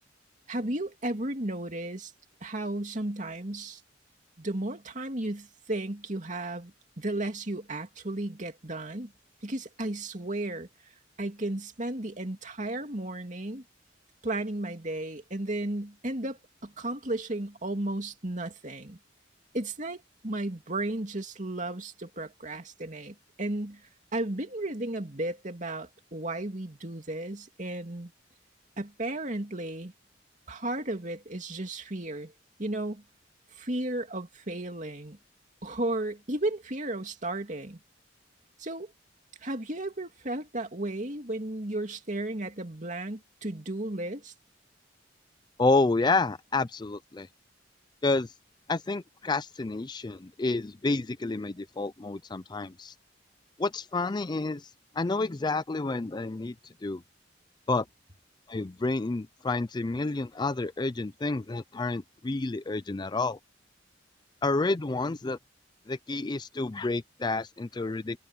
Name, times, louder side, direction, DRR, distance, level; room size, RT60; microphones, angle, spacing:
voice 1, 0.5-2.1 2.4-3.8 4.4-9.1 9.4-10.7 11.2-13.6 14.2-19.0 19.5-23.8 24.1-28.1 28.8-29.9 30.5-32.3 32.6-33.0 33.6-35.2 35.6-37.8 38.6-38.9 39.4-44.3, right 1 dB, 40° right, 2.7 m, -34 dB
voice 2, 45.6-47.3 48.0-48.3 48.7-52.9 53.6-54.7 54.9-56.5 56.8-57.0 57.7-57.8 58.5-63.4 64.4-65.4 65.9-68.2, left 3 dB, 20° left, 0.4 m, -29 dB
head